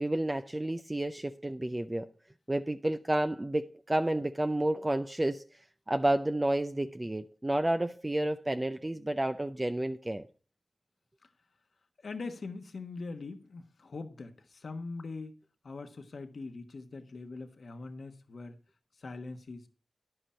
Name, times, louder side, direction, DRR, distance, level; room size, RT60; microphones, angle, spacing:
voice 1, 0.0-2.1 2.5-5.4 5.9-10.3, right 1 dB, 25° right, 0.5 m, -30 dB
voice 2, 12.0-15.3 15.6-18.5 19.0-19.7, left 3 dB, 75° left, 1.2 m, -42 dB
9.9 x 7.9 x 4.3 m
cardioid pair, 40°, 0 cm